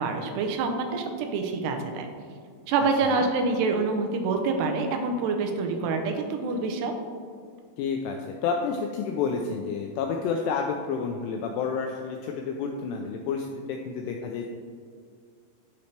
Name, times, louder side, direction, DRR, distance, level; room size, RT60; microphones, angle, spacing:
voice 1, 0.0-2.1 2.7-6.9, right 4 dB, 80° right, 4 dB, 2.5 m, -26 dB
voice 2, 7.8-8.2 8.4-14.5, left 5 dB, 85° left, 2 dB, 2.4 m, -30 dB
11.5 x 4.1 x 3.3 m, 2.1 s
omnidirectional pair, 5.2 m